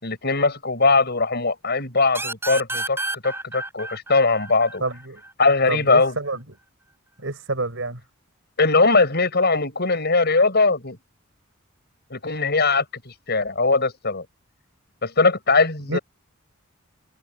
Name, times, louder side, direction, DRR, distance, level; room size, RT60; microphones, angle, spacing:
voice 1, 0.0-4.8 5.4-6.2 8.6-11.0 12.1-14.3 15.0-16.0, left 3 dB, 55° left, 6.2 m, -20 dB
sound 1, 2.1-5.5, right 2 dB, 10° right, 6.5 m, -31 dB
voice 2, 4.8-5.2 5.7-6.4 7.2-8.0 15.9-16.0, right 2 dB, 70° right, 5.2 m, -28 dB
head